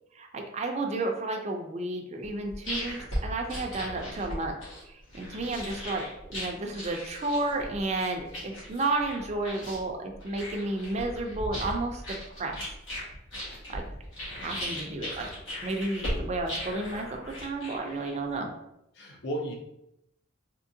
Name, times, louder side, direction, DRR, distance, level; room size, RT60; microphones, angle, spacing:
voice 1, 0.2-4.6 5.1-12.6 13.7-13.8 14.4-15.3 15.6-17.0 17.4-18.5, right 2 dB, 35° right, 2 dB, 0.4 m, -32 dB
sound 1, 2.2-18.3, equal, 85° left, 1.4 m, -38 dB
voice 2, 14.3-15.1 18.9-19.5, equal, 60° left, 1 dB, 0.7 m, -37 dB
3.6 x 2.8 x 2.7 m, 0.82 s
head